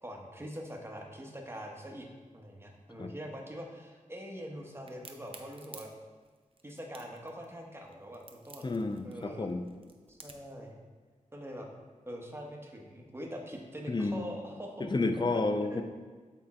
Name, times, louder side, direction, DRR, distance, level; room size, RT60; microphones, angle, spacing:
voice 1, 0.0-2.1 2.3-5.9 6.6-8.7 9.0-9.5 10.1-10.8 11.3-11.7 12.1-14.9 15.6-15.8, equal, 20° right, 1 dB, 1.2 m, -43 dB
Crack, 4.9-10.6, right 3 dB, 40° right, 0.7 m, -52 dB
voice 2, 8.6-9.7 13.9-14.3 14.8-15.8, left 3 dB, 35° left, 7 dB, 0.6 m, -31 dB
8.3 x 3.6 x 4.3 m, 1.4 s
cardioid pair, 60°, 14 cm